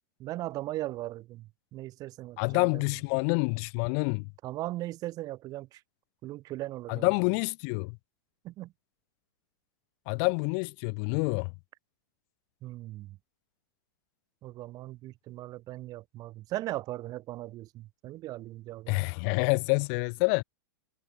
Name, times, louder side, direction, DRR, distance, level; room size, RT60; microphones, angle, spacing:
voice 1, 0.2-2.8 4.4-5.8 6.2-7.1 8.4-8.7 12.6-13.2 14.4-19.1, right 16 dB, 35° right, 2.8 m, -38 dB
voice 2, 2.4-4.3 6.9-8.0 10.1-11.5 18.9-20.4, left 40 dB or more, 40° left, 2.7 m, -27 dB
figure-of-eight pair, 100°, 11 cm